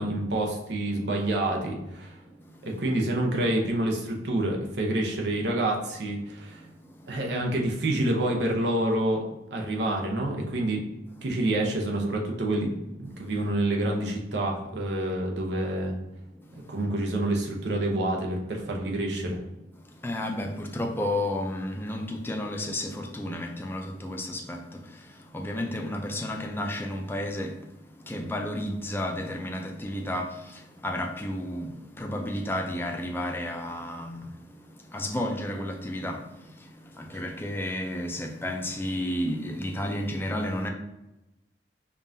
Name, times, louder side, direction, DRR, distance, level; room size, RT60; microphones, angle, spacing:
voice 1, 0.0-2.2 2.6-6.6 7.1-9.2 9.5-10.8 11.2-16.0 16.7-19.4, right 1 dB, 80° right, 0.8 m, -27 dB
voice 2, 20.0-27.6 28.0-34.3 34.9-40.7, left 1 dB, 15° left, 0.4 m, -32 dB
5.3 x 2.5 x 2.6 m
head